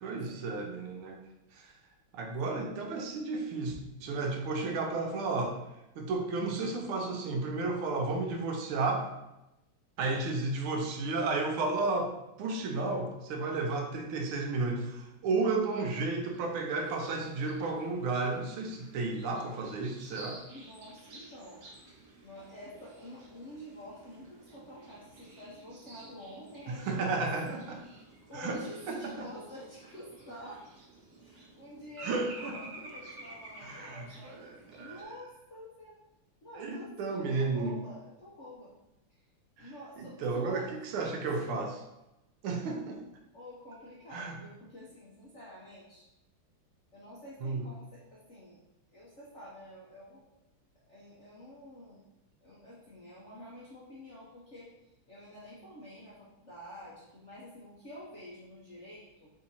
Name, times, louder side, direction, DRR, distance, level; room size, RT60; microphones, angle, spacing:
voice 1, 0.0-1.2 1.5-1.7 2.1-5.6 6.0-9.1 10.0-12.1 12.4-20.4 26.8-27.8 28.3-28.6 28.9-29.3 32.0-32.6 33.6-35.0 36.6-37.8 39.6-39.7 40.0-41.8 42.4-43.0 44.1-44.4 47.4-47.6, right 3 dB, 80° right, 3 dB, 1.5 m, -33 dB
sound 1, 16.3-35.0, right 2 dB, 55° right, 1.2 m, -52 dB
voice 2, 20.5-21.7 22.2-27.6 27.9-30.6 31.2-36.0 36.4-38.7 39.1-39.2 39.6-41.0 41.3-41.5 43.3-46.1 46.9-48.6 48.9-50.2 50.9-52.0 52.4-54.7 55.1-59.3, equal, 60° left, -7 dB, 0.7 m, -48 dB
4.2 x 2.8 x 4.1 m, 0.91 s
omnidirectional pair, 2.4 m